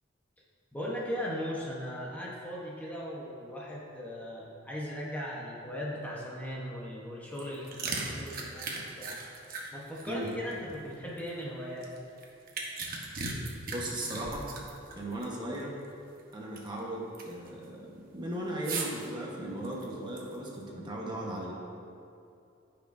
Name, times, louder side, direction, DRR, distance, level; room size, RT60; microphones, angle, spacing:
voice 1, 0.7-9.2 9.7-11.9, equal, 10° left, -5 dB, 1.0 m, -38 dB
sound 1, 7.3-11.3 11.8-15.3 15.5-15.6 16.2-16.8 17.1-17.5 18.6-19.1 19.6-20.5, right 3 dB, 50° right, 1.0 m, -38 dB
voice 2, 13.7-14.5 14.9-15.8 16.3-21.5, right 1 dB, 25° right, -3 dB, 1.2 m, -37 dB
14.5 x 5.9 x 2.6 m, 2.7 s
head